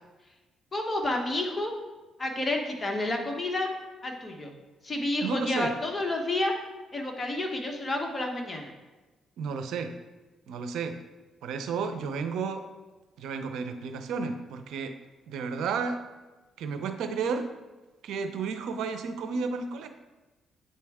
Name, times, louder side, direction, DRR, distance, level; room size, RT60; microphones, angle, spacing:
voice 1, 0.7-1.7 2.2-3.7 4.0-4.5 4.8-6.5 6.9-8.7, left 2 dB, 25° left, 2 dB, 1.2 m, -30 dB
voice 2, 5.2-5.7 9.4-9.9 10.5-11.0 11.4-12.6 13.2-14.9 15.3-16.0 16.6-17.5 18.0-19.9, right 5 dB, 80° right, 8 dB, 0.6 m, -32 dB
9.1 x 4.3 x 3.5 m, 1.2 s
cardioid pair, 90°, 0 cm